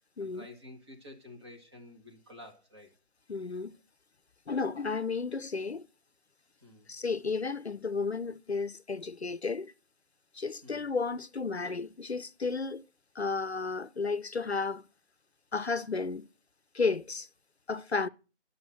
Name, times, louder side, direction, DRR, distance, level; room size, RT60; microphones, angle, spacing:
voice 1, 0.2-2.9 6.6-6.9 10.6-10.8, left 1 dB, 25° right, 2.0 m, -50 dB
voice 2, 3.3-3.8 4.5-5.9 6.9-9.7 10.3-12.8 13.1-14.8 15.5-16.3 16.7-17.3 17.7-18.1, left 4 dB, 65° left, 0.6 m, -33 dB
11.0 x 6.3 x 7.5 m
figure-of-eight pair, 160°, 35 cm